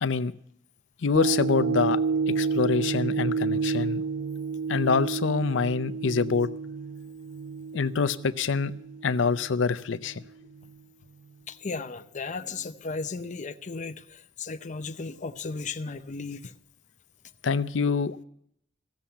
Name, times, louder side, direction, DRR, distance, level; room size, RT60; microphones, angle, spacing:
voice 1, 0.0-0.3 1.0-2.0 2.3-4.0 4.7-6.5 7.7-8.7 9.0-10.2 17.4-18.2, left 5 dB, 80° left, 14 dB, 0.6 m, -25 dB
sound 1, 1.1-9.5 10.0-10.1, right 5 dB, 65° right, 0.4 m, -30 dB
voice 2, 11.5-16.5, left 4 dB, 40° left, 7 dB, 0.6 m, -35 dB
15.5 x 7.1 x 8.9 m, 0.71 s
head